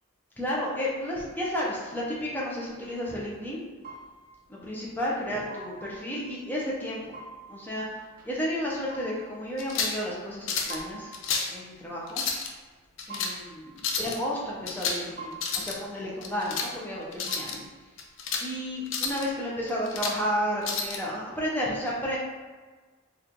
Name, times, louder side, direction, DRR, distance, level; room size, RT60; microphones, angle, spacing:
voice 1, 0.4-3.6 4.5-7.0 7.5-11.1 11.5-12.2 13.1-17.6 18.4-22.2, equal, 10° left, -5 dB, 0.6 m, -32 dB
sound 1, 2.7-18.1, right 3 dB, 45° right, 0.5 m, -49 dB
sound 2, 9.6-10.0 10.5-10.8 11.1-11.5 12.1-12.5 13.0-13.3 13.8-14.2 14.7-15.1 15.3-15.8 16.2-16.7 17.1-17.6 18.0-18.5 18.9-19.3 19.7-20.2 20.6-21.0, left 5 dB, 65° left, 0.4 m, -30 dB
3.0 x 2.3 x 3.8 m, 1.4 s
head